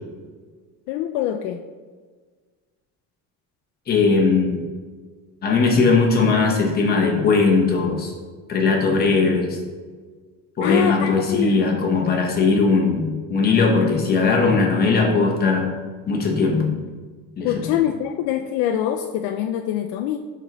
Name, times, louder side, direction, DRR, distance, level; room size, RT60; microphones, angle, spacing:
voice 1, 0.9-1.6 10.6-11.8 17.4-20.2, left 11 dB, 75° left, 5 dB, 0.5 m, -24 dB
voice 2, 3.9-4.6 5.4-8.1 8.5-9.6 10.6-15.7 16.1-16.7 17.4-17.7, left 4 dB, 25° left, 1 dB, 1.1 m, -19 dB
11.0 x 4.0 x 3.1 m, 1.5 s
cardioid pair, 160°, 36 cm